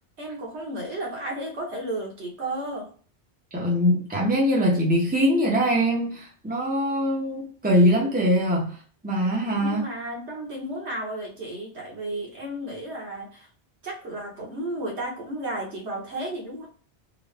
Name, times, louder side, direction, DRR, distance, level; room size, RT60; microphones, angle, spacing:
voice 1, 0.2-2.9 9.6-13.5 13.8-16.7, right 1 dB, 90° right, 1.5 m, -33 dB
voice 2, 3.5-8.8 9.0-9.8, equal, 10° right, 0.7 m, -22 dB
3.8 x 2.1 x 3.3 m
omnidirectional pair, 1.1 m